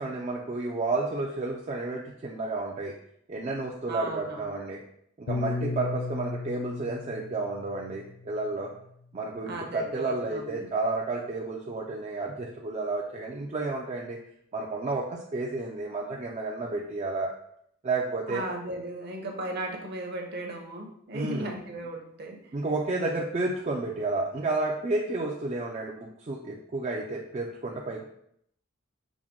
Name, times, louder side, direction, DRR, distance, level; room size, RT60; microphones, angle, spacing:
voice 1, 0.0-2.9 3.3-4.8 5.2-8.7 9.1-14.2 14.5-17.3 17.8-18.4 21.1-21.5 22.5-28.0, right 3 dB, 30° right, -2 dB, 0.4 m, -31 dB
voice 2, 3.9-4.6 9.5-10.7 18.3-22.5, right 2 dB, 50° right, 1 dB, 0.8 m, -36 dB
Piano, 5.3-9.7, left 3 dB, 85° left, 0.4 m, -36 dB
6.0 x 2.1 x 3.6 m, 0.71 s
head